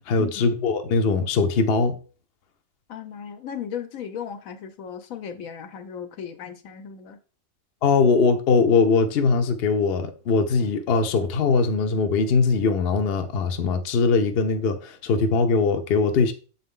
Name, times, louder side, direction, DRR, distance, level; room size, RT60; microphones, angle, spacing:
voice 1, 0.1-2.0 7.8-16.3, left 4 dB, 55° left, 0.8 m, -21 dB
voice 2, 2.9-7.2, left 8 dB, 70° left, 1.1 m, -36 dB
7.3 x 4.1 x 3.7 m
omnidirectional pair, 1.6 m